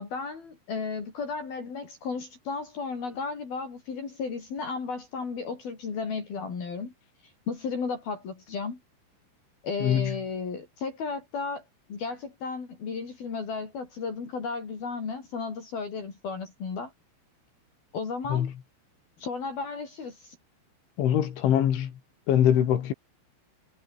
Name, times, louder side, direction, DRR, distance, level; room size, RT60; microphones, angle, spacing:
voice 1, 0.0-6.9 7.5-8.8 9.6-11.6 11.9-16.9 17.9-18.5 19.2-20.4, left 4 dB, 50° left, 6.5 m, -34 dB
voice 2, 9.8-10.2 18.3-18.5 21.0-21.9 22.3-22.9, left 10 dB, 75° left, 5.0 m, -23 dB
omnidirectional pair, 5.5 m